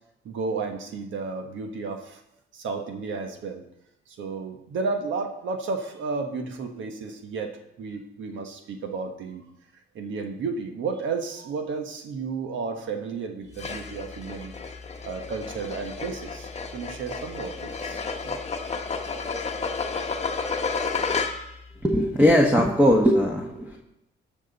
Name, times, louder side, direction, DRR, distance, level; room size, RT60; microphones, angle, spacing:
voice 1, 0.2-2.2 2.5-3.6 4.1-9.4 9.9-14.5 15.0-18.4, right 4 dB, 75° right, 5 dB, 1.3 m, -32 dB
sound 1, 13.5-21.6, left 4 dB, 35° left, 1.0 m, -31 dB
voice 2, 21.8-23.8, equal, 10° right, -1 dB, 1.3 m, -19 dB
17.5 x 6.1 x 4.1 m, 0.84 s
cardioid pair, 90°, 20 cm